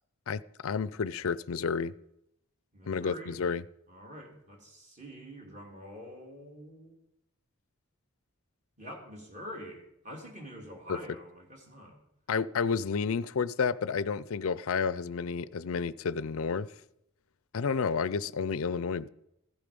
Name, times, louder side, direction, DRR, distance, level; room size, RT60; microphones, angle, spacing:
voice 1, 0.3-1.9 2.9-3.6 10.9-11.0 12.3-16.7 17.5-19.1, left 5 dB, 70° left, 0.5 m, -31 dB
voice 2, 2.7-3.4 3.9-7.0 8.8-12.0 12.6-12.8, equal, 35° right, 3.2 m, -46 dB
15.0 x 12.0 x 5.3 m
head